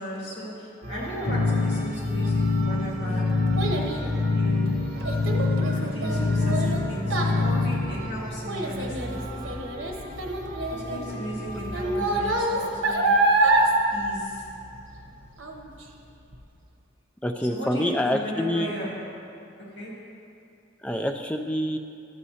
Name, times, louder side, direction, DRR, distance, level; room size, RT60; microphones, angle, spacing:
voice 1, 0.0-3.3 4.3-4.7 5.7-9.2 10.7-13.1 13.9-14.5 17.4-19.1 19.7-19.9, equal, 65° left, -5 dB, 2.0 m, -35 dB
sound 1, 0.8-12.4, equal, 50° right, 0.9 m, -38 dB
sound 2, 1.3-8.0, left 3 dB, 45° left, 0.7 m, -25 dB
Child speech kid speaking, 2.4-15.0 15.4-15.8 16.3-16.4, right 2 dB, 80° right, 0.8 m, -27 dB
voice 2, 17.2-18.7 20.8-21.8, left 1 dB, 5° left, 4 dB, 0.3 m, -26 dB
12.0 x 7.3 x 2.8 m, 2.5 s
head